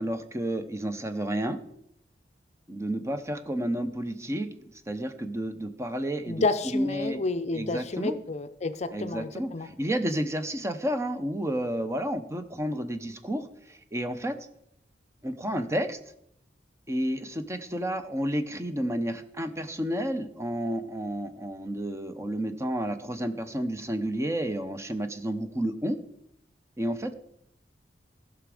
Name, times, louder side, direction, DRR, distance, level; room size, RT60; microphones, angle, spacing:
voice 1, 0.0-1.6 2.7-4.5 4.9-7.2 7.5-8.2 8.9-14.4 15.2-16.0 16.9-26.0 26.8-27.1, equal, 15° right, 9 dB, 0.7 m, -31 dB
voice 2, 6.2-9.7, left 3 dB, 40° left, 10 dB, 0.5 m, -30 dB
15.0 x 6.0 x 4.9 m, 0.73 s
head